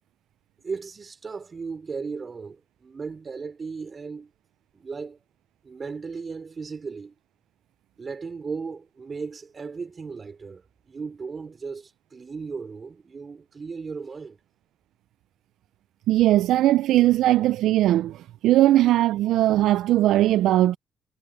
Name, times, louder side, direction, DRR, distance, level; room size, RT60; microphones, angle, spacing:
voice 1, 0.6-4.3 4.7-5.2 5.6-7.1 8.0-14.4, right 5 dB, 35° right, 3.5 m, -36 dB
voice 2, 16.1-20.8, right 14 dB, 85° right, 0.3 m, -19 dB
cardioid pair, 90°, 0 cm